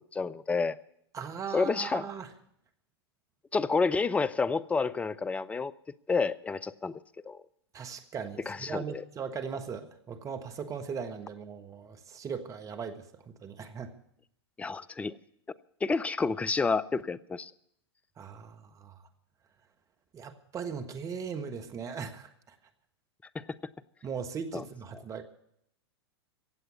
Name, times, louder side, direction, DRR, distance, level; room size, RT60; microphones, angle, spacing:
voice 1, 0.1-0.8 1.5-2.0 3.5-5.7 6.1-6.9 7.3-7.4 8.5-9.0 14.6-15.2 15.8-17.5 23.3-23.4 24.5-24.6, left 4 dB, 10° left, 17 dB, 0.5 m, -29 dB
voice 2, 1.1-2.3 7.7-13.9 18.2-19.0 20.1-22.5 24.0-25.2, right 6 dB, 25° right, 6 dB, 1.5 m, -39 dB
16.0 x 7.9 x 9.5 m, 0.73 s
figure-of-eight pair, 100°, 14 cm